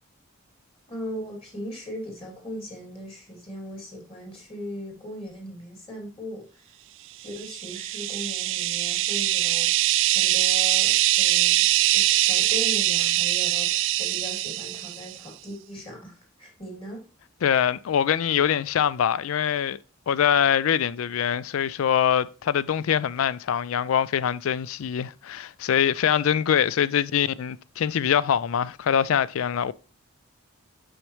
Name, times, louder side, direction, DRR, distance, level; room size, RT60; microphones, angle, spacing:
voice 1, 0.9-6.6 7.2-11.7 11.9-17.0, equal, 30° left, 2.8 m, -38 dB
sound 1, 7.3-15.1, right 15 dB, 65° right, 0.3 m, -23 dB
voice 2, 17.4-19.8 20.1-29.7, left 8 dB, 85° left, 0.4 m, -23 dB
6.4 x 6.1 x 3.1 m
head